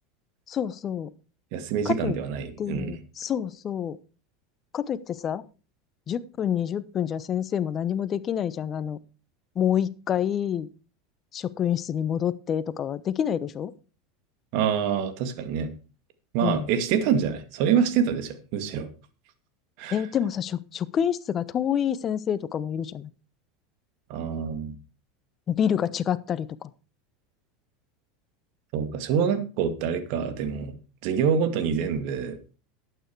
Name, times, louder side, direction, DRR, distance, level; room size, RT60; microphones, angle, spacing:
voice 1, 0.5-1.1 1.8-2.2 2.6-4.0 4.7-5.4 6.1-9.0 9.5-10.7 11.3-13.7 16.4-16.7 19.9-23.1 25.5-26.7, left 9 dB, 35° left, 17 dB, 0.9 m, -27 dB
voice 2, 1.5-2.9 14.5-15.7 16.3-18.9 19.8-20.0 24.1-24.8 28.7-30.7 31.0-32.4, right 7 dB, 60° right, 10 dB, 2.1 m, -26 dB
12.0 x 9.1 x 4.7 m, 0.34 s
supercardioid pair, 105°, 0 cm